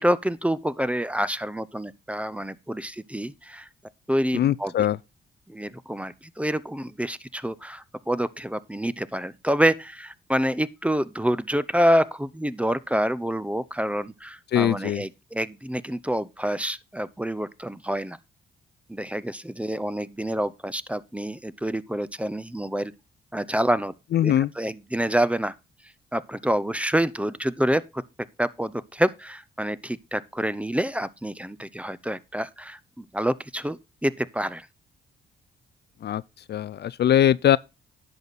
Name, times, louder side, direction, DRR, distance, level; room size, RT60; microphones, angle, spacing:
voice 1, 0.0-3.7 4.1-4.7 5.5-18.2 18.9-22.9 23.3-23.9 24.2-25.5 26.1-28.0 28.4-34.7, equal, 5° right, 0.6 m, -27 dB
voice 2, 4.3-5.0 14.5-15.0 24.1-24.5 36.0-36.2 36.5-37.6, left 11 dB, 55° left, 0.4 m, -21 dB
10.5 x 6.3 x 4.0 m
cardioid pair, 70°, 21 cm